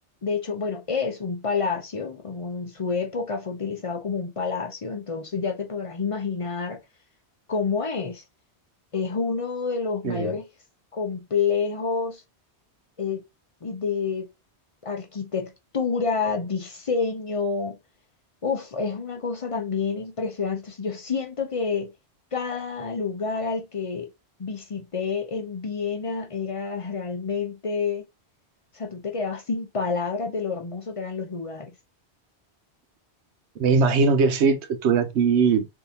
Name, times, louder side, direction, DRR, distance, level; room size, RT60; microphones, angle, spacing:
voice 1, 0.2-6.8 7.5-8.2 8.9-10.4 10.9-12.2 13.0-13.2 13.6-14.3 14.8-17.8 18.4-21.9 22.3-24.1 24.4-28.0 28.7-31.7, left 5 dB, 40° left, 0.6 m, -28 dB
voice 2, 33.6-35.7, right 5 dB, 85° right, 1.0 m, -20 dB
3.5 x 2.7 x 2.7 m
omnidirectional pair, 1.1 m